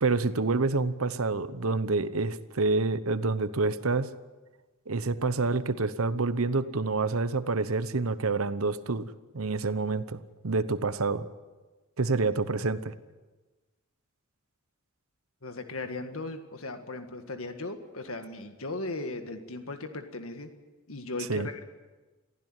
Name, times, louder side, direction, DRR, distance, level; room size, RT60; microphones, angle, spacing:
voice 1, 0.0-4.1 4.9-11.3 12.0-12.9 21.3-21.5, right 3 dB, 80° right, 13 dB, 1.0 m, -28 dB
voice 2, 15.4-20.5 20.9-21.6, left 2 dB, 75° left, 6 dB, 1.8 m, -37 dB
23.0 x 15.5 x 9.1 m, 1.2 s
head